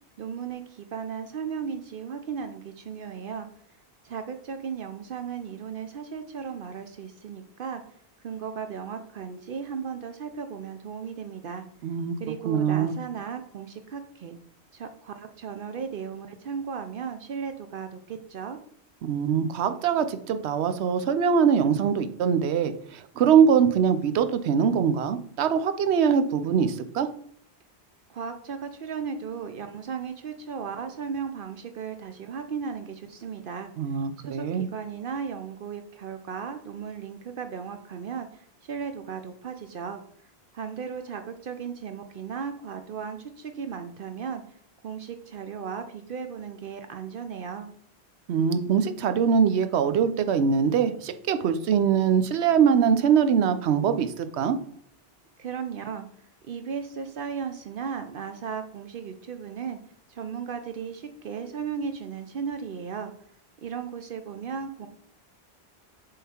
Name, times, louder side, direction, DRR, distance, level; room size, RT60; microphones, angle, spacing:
voice 1, 0.2-3.5 4.0-7.8 8.2-11.6 12.2-14.4 14.7-18.6 28.1-33.7 34.2-40.0 40.5-44.4 44.8-47.7 55.4-56.1 56.5-59.8 60.1-63.1 63.6-64.9, right 6 dB, 60° right, 8 dB, 0.7 m, -36 dB
voice 2, 11.8-12.2 12.5-12.9 19.0-27.1 33.8-34.7 48.3-54.6, right 7 dB, 90° right, 10 dB, 0.9 m, -23 dB
7.0 x 3.7 x 4.3 m, 0.64 s
omnidirectional pair, 1.1 m